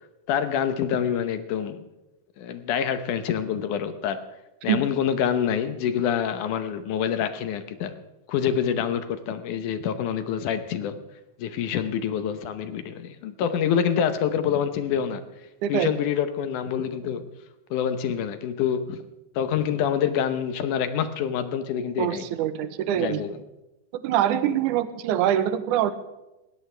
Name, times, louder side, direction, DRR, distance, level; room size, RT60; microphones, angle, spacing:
voice 1, 0.3-1.8 2.4-4.2 4.6-7.9 8.3-11.0 11.4-15.2 15.7-17.2 17.7-19.0 19.4-22.3 23.0-23.4, left 8 dB, 70° left, 10 dB, 2.3 m, -26 dB
voice 2, 15.6-15.9 22.0-23.3 23.9-26.0, right 11 dB, 75° right, 12 dB, 2.2 m, -24 dB
20.0 x 17.0 x 3.4 m, 0.97 s
omnidirectional pair, 4.0 m